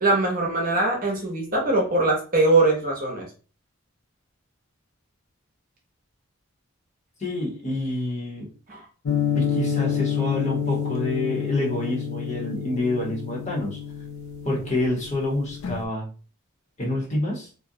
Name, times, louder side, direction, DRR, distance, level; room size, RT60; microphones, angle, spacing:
voice 1, 0.0-3.2 8.7-8.8, right 2 dB, 40° right, 0 dB, 0.7 m, -22 dB
voice 2, 7.2-8.5 9.3-13.8 14.4-16.1 16.8-17.5, left 2 dB, 35° left, -2 dB, 0.8 m, -27 dB
sound 1, 9.1-15.9, left 8 dB, 80° left, 0.4 m, -29 dB
2.5 x 2.1 x 2.7 m, 0.37 s
head